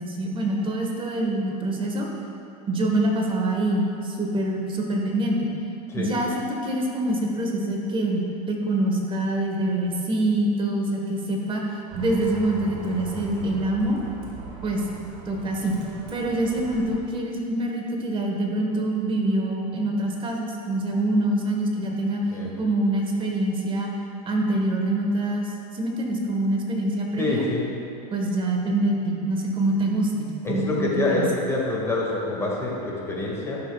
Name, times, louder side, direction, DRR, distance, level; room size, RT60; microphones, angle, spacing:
voice 1, 0.0-2.1 2.7-5.4 6.0-11.6 11.9-14.0 14.6-14.8 15.3-15.8 16.1-22.2 22.6-23.9 24.3-25.5 25.7-27.4 28.1-31.2, right 1 dB, 25° right, 0 dB, 1.3 m, -25 dB
Bus, 11.9-17.0, right 2 dB, 70° right, 1.7 m, -40 dB
voice 2, 27.2-27.6 30.4-33.6, left 2 dB, 15° left, -3 dB, 1.7 m, -26 dB
11.5 x 6.6 x 2.3 m, 2.8 s
hypercardioid pair, 110°, 20 cm